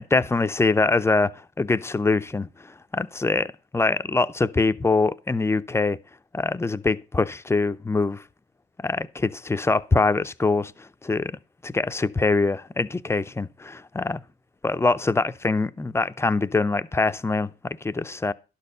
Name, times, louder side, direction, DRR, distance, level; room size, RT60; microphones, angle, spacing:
voice 1, 0.0-1.3 1.6-2.5 2.9-6.0 6.3-8.2 8.8-14.2 14.6-18.3, left 3 dB, 15° left, 0.4 m, -24 dB
11.5 x 4.3 x 6.6 m
cardioid pair, 90°, 20 cm